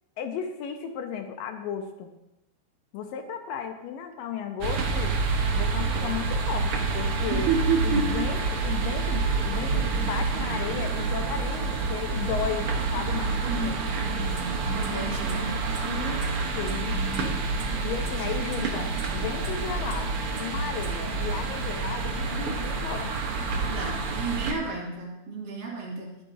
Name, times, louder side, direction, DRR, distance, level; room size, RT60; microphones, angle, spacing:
voice 1, 0.2-2.1 2.9-7.5 7.8-8.4 8.6-13.7 15.9-17.4 17.8-23.5, left 8 dB, 75° left, 6 dB, 2.3 m, -35 dB
sound 1, 4.6-24.5, right 4 dB, 90° right, 1.2 m, -28 dB
voice 2, 7.3-8.3 13.5-13.8 14.0-15.5 17.4-18.3 23.7-26.1, right 4 dB, 70° right, -3 dB, 4.3 m, -31 dB
sound 2, 14.4-14.5 14.8-14.9 15.3-15.4 15.7-15.8 16.2-16.3 16.7-16.8 17.1-17.2 17.6-17.7 18.1-18.2 18.5-18.6 19.0-19.1 19.4-19.5 19.9-20.0 20.4-20.5 20.8-20.9, right 5 dB, 55° right, 3.6 m, -43 dB
22.0 x 8.6 x 2.7 m, 0.92 s
omnidirectional pair, 4.3 m